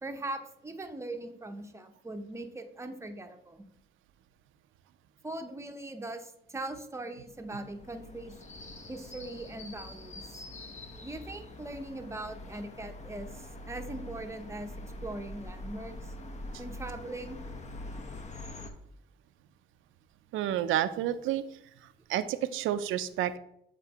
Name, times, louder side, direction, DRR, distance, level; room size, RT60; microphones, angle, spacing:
voice 1, 0.0-3.6 5.2-8.3 8.9-10.4 11.0-14.7 15.0-16.1 16.6-17.4, right 2 dB, 15° right, 5 dB, 0.7 m, -40 dB
sound 1, 7.2-18.7, left 1 dB, 35° left, 0.8 m, -44 dB
voice 2, 20.3-21.4 22.1-23.4, right 11 dB, 80° right, 12 dB, 0.4 m, -29 dB
7.5 x 4.4 x 2.9 m, 0.75 s
cardioid pair, 90°, 20 cm